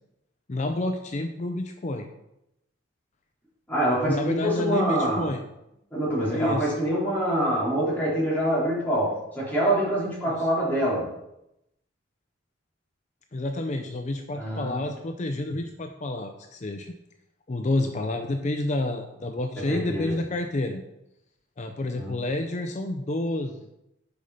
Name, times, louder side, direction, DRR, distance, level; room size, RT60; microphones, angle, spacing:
voice 1, 0.5-2.1 4.0-5.4 6.3-6.8 10.3-10.5 13.3-16.9 17.5-20.8 21.6-23.7, left 2 dB, 40° left, 5 dB, 0.5 m, -29 dB
voice 2, 3.7-5.2 5.9-11.1 14.3-14.9 19.7-20.1 22.0-22.1, right 1 dB, 10° left, -8 dB, 3.4 m, -25 dB
6.8 x 5.2 x 5.6 m, 0.85 s
head